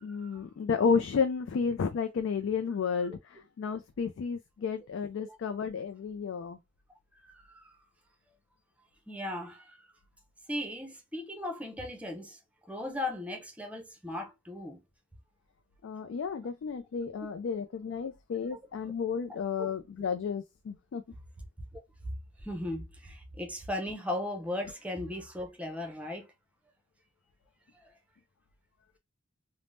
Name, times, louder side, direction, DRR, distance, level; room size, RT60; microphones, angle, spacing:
voice 1, 0.0-3.2 3.6-6.6 15.8-21.0, left 6 dB, 70° left, 0.3 m, -32 dB
voice 2, 9.1-9.8 10.5-12.4 12.7-14.8 18.5-18.6 22.4-26.3, left 1 dB, 5° right, 0.6 m, -37 dB
3.4 x 2.0 x 2.5 m
head